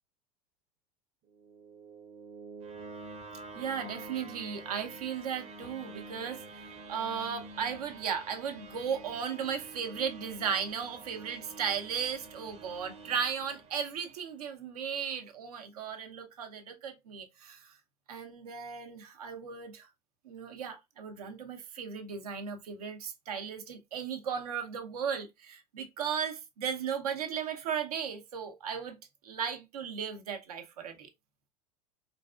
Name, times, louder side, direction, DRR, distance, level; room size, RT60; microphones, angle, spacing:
sound 1, 1.3-14.3, right 3 dB, 30° right, 0.7 m, -48 dB
voice 1, 3.5-17.7 18.1-19.9 20.2-29.0 29.2-31.1, right 7 dB, 85° right, 0.7 m, -36 dB
4.0 x 2.5 x 2.3 m
hypercardioid pair, 90°, 19 cm